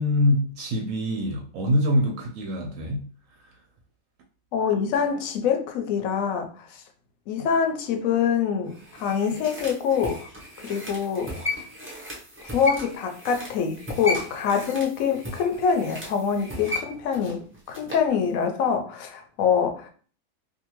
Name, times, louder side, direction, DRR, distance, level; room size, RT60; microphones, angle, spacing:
voice 1, 0.0-3.1 3.4-3.5, left 1 dB, 70° right, 0.9 m, -24 dB
voice 2, 4.5-6.8 7.3-10.2 10.6-11.3 12.5-19.9, left 7 dB, 75° left, 1.0 m, -25 dB
sound 1, 8.7-18.1 18.4-18.5, left 2 dB, 20° right, 0.3 m, -35 dB
2.6 x 2.4 x 2.9 m
omnidirectional pair, 1.5 m